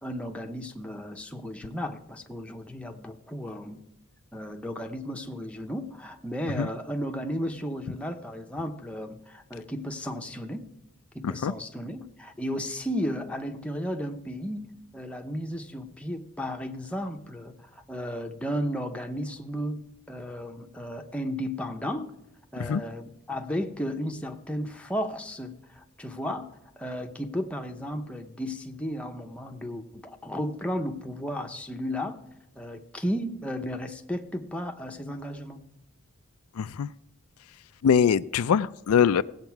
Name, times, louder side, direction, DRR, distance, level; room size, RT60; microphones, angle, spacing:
voice 1, 0.0-3.8 4.3-10.6 11.1-14.7 14.9-22.1 22.5-26.5 26.8-32.2 32.6-35.6, equal, 5° left, 3 dB, 0.7 m, -34 dB
voice 2, 36.5-36.9 37.8-39.2, left 7 dB, 85° left, 15 dB, 0.4 m, -23 dB
16.5 x 8.0 x 4.7 m, 0.88 s
head